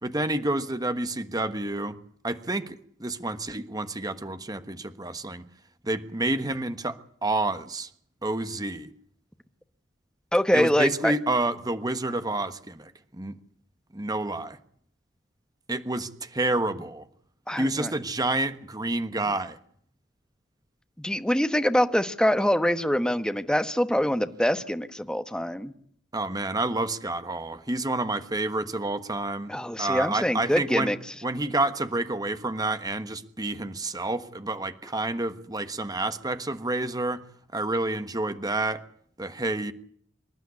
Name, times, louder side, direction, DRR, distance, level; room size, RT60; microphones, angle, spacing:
voice 1, 0.0-2.0 2.2-5.4 5.8-7.9 8.2-8.9 10.5-13.3 13.9-14.6 15.7-17.1 17.6-19.6 26.1-29.5 29.8-30.9 31.2-37.2 37.5-38.8 39.2-39.7, right 2 dB, 20° right, 10 dB, 1.3 m, -29 dB
voice 2, 10.3-11.1 17.5-17.9 21.0-25.7 29.5-31.0, equal, 5° left, 9 dB, 1.2 m, -24 dB
27.0 x 12.5 x 9.7 m, 0.63 s
head